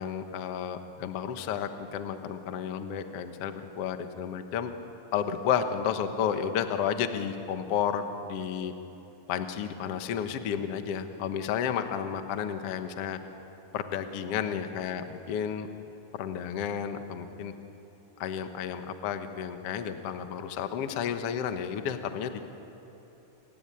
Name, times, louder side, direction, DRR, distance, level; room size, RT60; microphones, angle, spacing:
voice 1, 0.0-4.7 5.1-8.7 9.3-13.2 13.7-15.7 16.2-17.5 18.2-22.4, left 8 dB, 70° left, 7 dB, 1.4 m, -32 dB
29.0 x 18.0 x 9.8 m, 3.0 s
omnidirectional pair, 4.6 m